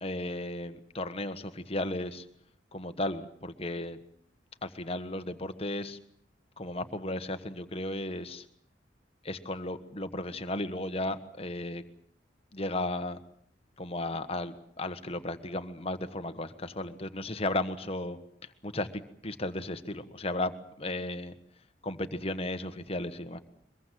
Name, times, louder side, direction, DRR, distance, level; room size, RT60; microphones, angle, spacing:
voice 1, 0.0-2.2 2.7-4.0 4.6-6.0 6.6-8.4 9.2-11.8 12.5-13.2 13.8-18.2 18.6-20.5 20.8-21.3 21.8-23.4, left 1 dB, 30° left, 9 dB, 1.4 m, -34 dB
23.5 x 22.0 x 7.7 m, 0.67 s
head